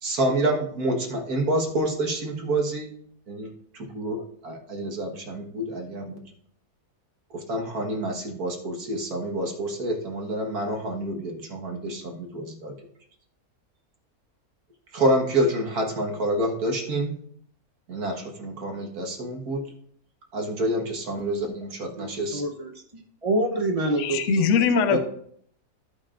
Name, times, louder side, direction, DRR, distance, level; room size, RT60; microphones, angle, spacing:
voice 1, 0.0-2.9 3.3-6.2 7.3-12.8 14.9-17.2 17.9-19.6 20.3-22.4 24.9-25.0, right 1 dB, 65° right, 1 dB, 2.0 m, -28 dB
voice 2, 22.0-25.0, right 1 dB, 25° right, 2 dB, 0.9 m, -28 dB
voice 3, 24.0-25.0, left 6 dB, 60° left, 9 dB, 0.9 m, -21 dB
15.0 x 5.2 x 2.5 m, 0.64 s
omnidirectional pair, 1.7 m